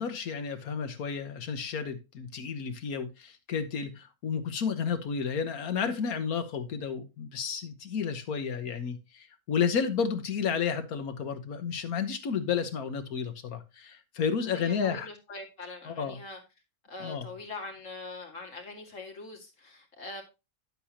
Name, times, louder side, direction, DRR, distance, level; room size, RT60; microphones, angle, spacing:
voice 1, 0.0-15.1 15.9-16.2 17.0-17.3, left 6 dB, 75° left, 1.6 m, -32 dB
voice 2, 14.5-16.4 16.9-20.2, left 3 dB, 60° left, 2.6 m, -43 dB
9.9 x 7.7 x 2.9 m
omnidirectional pair, 1.6 m